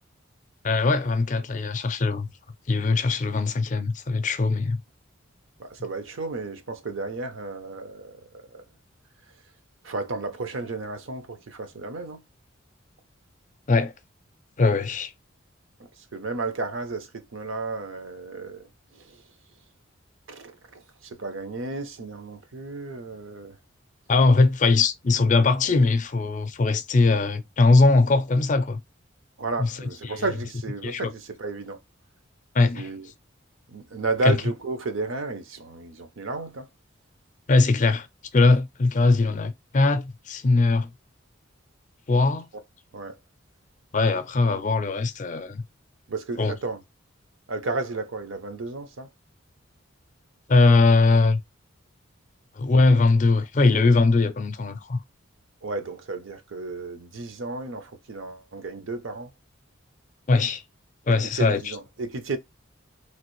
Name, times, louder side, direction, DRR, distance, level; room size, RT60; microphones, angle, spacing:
voice 1, 0.6-2.3 2.7-4.8 13.7-13.9 14.6-15.1 24.1-28.8 29.6-29.7 30.0-30.1 30.8-31.1 32.5-32.9 34.2-34.4 37.5-38.1 38.3-40.9 42.1-42.5 43.9-45.6 46.4-46.5 50.5-51.4 52.6-55.0 60.3-60.6 61.1-61.7, left 3 dB, 35° left, 0.4 m, -20 dB
voice 2, 5.6-8.6 9.8-12.2 16.1-18.7 18.9-19.2 20.3-23.6 29.4-31.8 32.7-33.1 33.7-36.7 42.9-43.2 46.1-46.8 47.5-49.1 55.6-59.3 61.1-62.4, right 3 dB, 75° right, 0.6 m, -33 dB
3.2 x 2.4 x 3.0 m
head